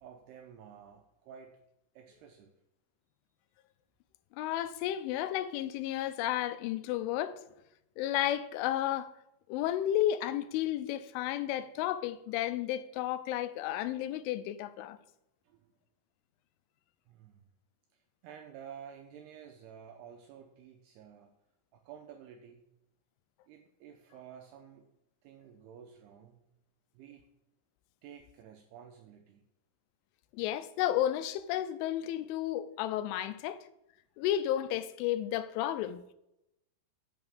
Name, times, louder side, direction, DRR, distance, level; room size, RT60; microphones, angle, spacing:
voice 1, 0.0-1.6 1.9-2.5 15.4-15.7 17.1-17.5 17.9-21.3 21.7-22.6 23.5-24.9 25.2-26.4 26.9-27.3 28.0-29.4, right 8 dB, 85° right, 2.4 m, -52 dB
voice 2, 4.4-7.4 8.0-9.1 9.5-15.0 30.3-33.7 34.2-36.1, left 12 dB, 90° left, 3.1 m, -32 dB
9.4 x 5.8 x 7.0 m
omnidirectional pair, 5.4 m